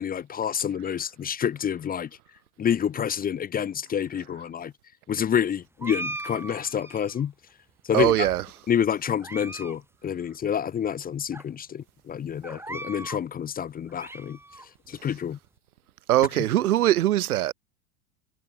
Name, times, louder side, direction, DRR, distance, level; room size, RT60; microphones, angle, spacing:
voice 1, 0.0-2.1 2.6-4.7 5.1-7.3 7.9-8.3 8.7-14.4 14.9-15.4 16.4-16.5, left 8 dB, 20° left, 1.0 m, -28 dB
sound 1, 5.8-7.2 7.9-8.6 9.1-9.8 10.0-10.1 10.8-10.9 11.3-11.4 12.4-13.2 13.7-14.7, right 2 dB, 5° right, 2.8 m, -38 dB
voice 2, 7.9-8.4 16.1-17.5, right 14 dB, 75° right, 1.4 m, -21 dB
hypercardioid pair, 105°, 44 cm